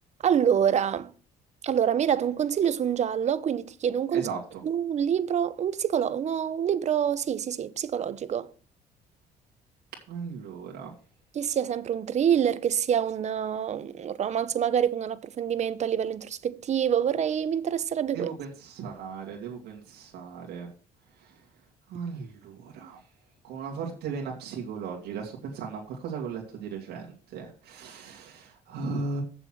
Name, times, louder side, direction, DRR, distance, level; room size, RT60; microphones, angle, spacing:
voice 1, 0.2-1.1 1.6-4.3 4.6-8.5 11.3-18.3, right 8 dB, 40° right, 0.8 m, -26 dB
voice 2, 10.1-10.9 18.1-20.7 21.2-21.3 21.9-23.0 23.4-29.2, right 5 dB, 75° right, 2.4 m, -36 dB
7.6 x 6.9 x 6.2 m
cardioid pair, 110°, 17 cm